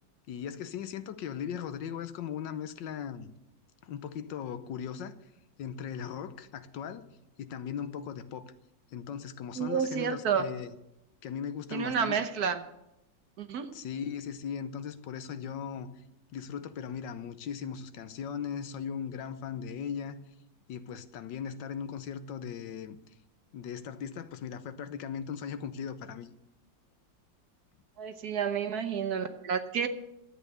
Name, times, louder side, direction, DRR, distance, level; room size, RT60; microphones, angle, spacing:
voice 1, 0.3-3.3 3.8-5.1 5.6-7.1 7.4-8.5 8.9-10.7 11.2-12.3 13.7-15.9 16.3-20.2 20.7-23.0 23.5-26.3, left 7 dB, 75° left, 1.4 m, -38 dB
voice 2, 9.6-10.5 11.7-12.6 13.4-13.7 28.0-29.9, right 7 dB, 60° right, 1.3 m, -30 dB
12.5 x 8.2 x 7.9 m
omnidirectional pair, 2.0 m